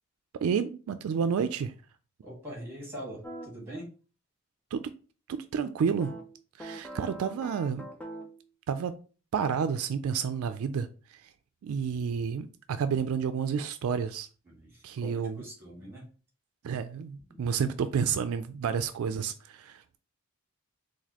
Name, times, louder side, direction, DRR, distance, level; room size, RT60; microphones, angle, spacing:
voice 1, 0.4-1.7 4.7-4.9 5.3-6.1 6.6-7.9 8.7-9.0 9.3-11.2 11.6-14.3 14.8-15.4 16.6-19.8, right 6 dB, 75° right, 0.3 m, -30 dB
voice 2, 2.2-3.9 14.5-16.1 17.3-17.4, right 1 dB, 10° right, 1.7 m, -43 dB
sound 1, 3.2-3.5 6.0-8.4, right 2 dB, 5° left, 0.4 m, -43 dB
4.1 x 2.6 x 2.8 m
head